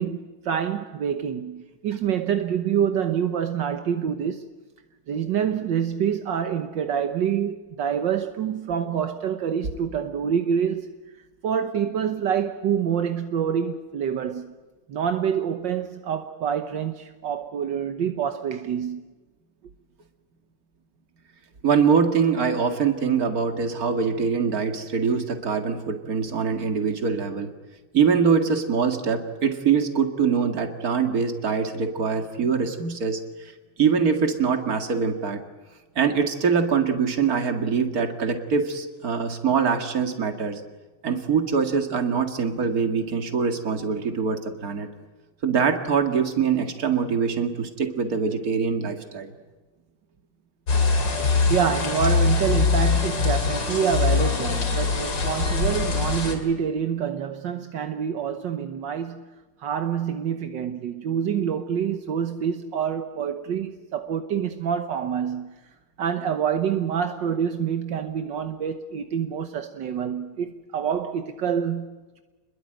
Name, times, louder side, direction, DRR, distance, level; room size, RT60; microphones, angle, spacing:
voice 1, 0.0-4.5 5.1-10.9 11.4-14.5 14.9-19.0 51.5-59.3 59.6-65.6 66.0-72.2, right 8 dB, 75° right, 1.7 m, -26 dB
voice 2, 21.6-27.5 27.9-33.5 33.8-35.4 36.0-40.6 41.0-44.9 45.4-49.3, right 6 dB, 50° right, 2.5 m, -23 dB
sound 1, 50.7-56.4, left 4 dB, 70° left, 3.6 m, -23 dB
29.0 x 21.5 x 9.0 m
omnidirectional pair, 2.0 m